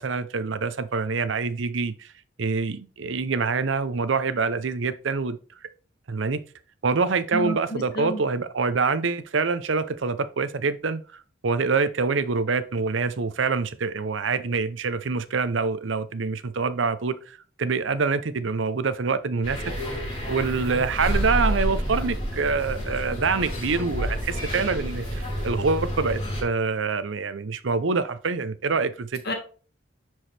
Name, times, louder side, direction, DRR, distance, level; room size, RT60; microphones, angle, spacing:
voice 1, 0.0-2.1 2.4-5.4 6.1-6.4 6.8-19.6 20.3-29.2, right 4 dB, 80° right, 0.6 m, -26 dB
voice 2, 7.3-8.2 29.3-29.4, right 1 dB, 55° left, 1.8 m, -30 dB
sound 1, 19.4-26.4, equal, 30° left, 3.8 m, -29 dB
10.0 x 4.7 x 3.3 m
head